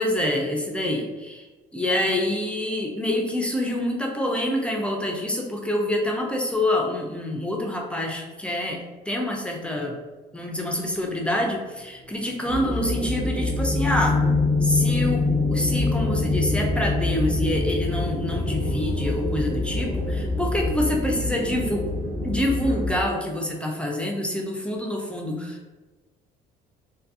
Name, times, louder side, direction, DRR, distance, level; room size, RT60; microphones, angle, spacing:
voice 1, 0.0-1.5 1.7-10.0 10.3-14.2 14.6-21.9 22.2-25.7, left 1 dB, 5° left, 0 dB, 0.4 m, -26 dB
sound 1, 10.6-22.1, equal, 40° right, 1.1 m, -43 dB
sound 2, 12.5-23.0, left 2 dB, 85° right, 0.8 m, -25 dB
2.6 x 2.5 x 2.4 m, 1.2 s
cardioid pair, 110°, 17 cm